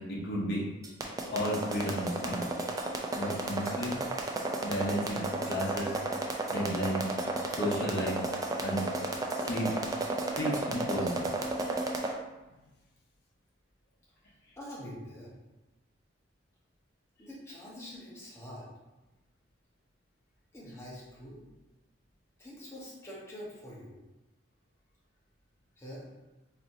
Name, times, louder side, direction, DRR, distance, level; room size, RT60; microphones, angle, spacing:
voice 1, 0.1-0.6 1.3-2.4 3.1-4.0 4.6-5.9 6.5-7.0 7.5-8.2 8.6-8.8 9.4-9.7 10.4-11.3, equal, 55° left, -5 dB, 0.8 m, -32 dB
sound 1, 0.8-12.1, right 2 dB, 20° right, 0.3 m, -32 dB
Wind instrument woodwind instrument, 3.8-10.8, right 2 dB, 80° right, 1.0 m, -49 dB
voice 2, 14.6-15.3 17.2-18.7 20.5-21.4 22.4-24.0 25.8-26.0, equal, 15° left, -7 dB, 1.0 m, -45 dB
4.1 x 2.9 x 2.6 m, 1.0 s
head